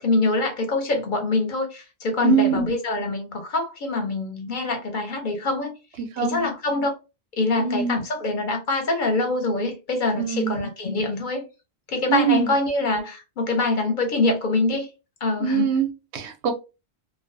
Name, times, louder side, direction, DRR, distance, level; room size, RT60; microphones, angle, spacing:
voice 1, 0.0-5.7 6.2-6.9 7.4-11.5 11.9-14.9 15.2-15.7, left 2 dB, 55° left, 0.7 m, -24 dB
voice 2, 2.2-2.7 6.0-6.5 7.6-8.0 10.2-10.6 12.1-12.5 15.4-16.5, right 7 dB, 90° right, 0.9 m, -23 dB
2.3 x 2.2 x 2.5 m
omnidirectional pair, 1.1 m